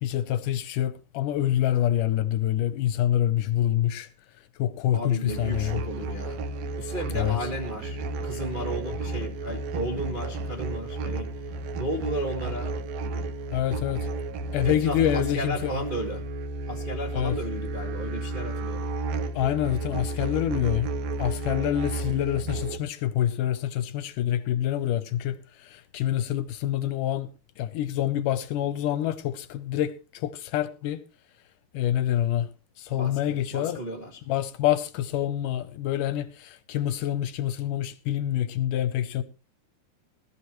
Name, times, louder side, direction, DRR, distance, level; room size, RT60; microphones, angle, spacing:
voice 1, 0.0-4.1 4.6-5.8 7.1-7.4 13.5-14.1 14.5-15.7 17.1-17.4 19.4-20.9 21.2-27.3 27.6-31.0 31.7-32.5 32.8-33.8 34.3-39.2, left 12 dB, 75° left, 2.1 m, -26 dB
voice 2, 4.9-6.4 6.8-11.3 11.8-12.8 14.6-16.2 16.6-18.9 32.9-34.2, right 1 dB, 50° right, 0.5 m, -34 dB
sound 1, 5.3-22.8, right 2 dB, 75° right, 1.6 m, -32 dB
19.0 x 13.0 x 3.1 m
omnidirectional pair, 4.1 m